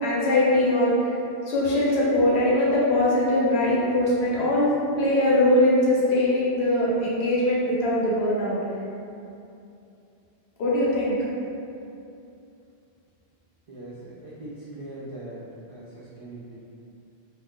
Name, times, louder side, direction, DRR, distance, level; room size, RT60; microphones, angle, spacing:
voice 1, 0.0-0.9 1.5-8.6 10.6-11.1, left 1 dB, 90° left, -6 dB, 1.0 m, -21 dB
voice 2, 13.7-16.6, right 1 dB, 55° right, -8 dB, 0.4 m, -40 dB
2.4 x 2.2 x 3.6 m, 2.6 s
omnidirectional pair, 1.1 m